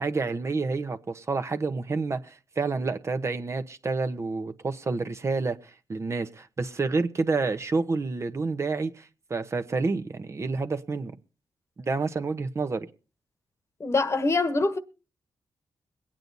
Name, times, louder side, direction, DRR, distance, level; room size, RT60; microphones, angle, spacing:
voice 1, 0.0-11.1 11.8-12.9, right 4 dB, 40° right, 1.1 m, -29 dB
voice 2, 13.8-14.8, left 3 dB, 40° left, 1.3 m, -24 dB
22.0 x 9.0 x 4.0 m
cardioid pair, 65°, 7 cm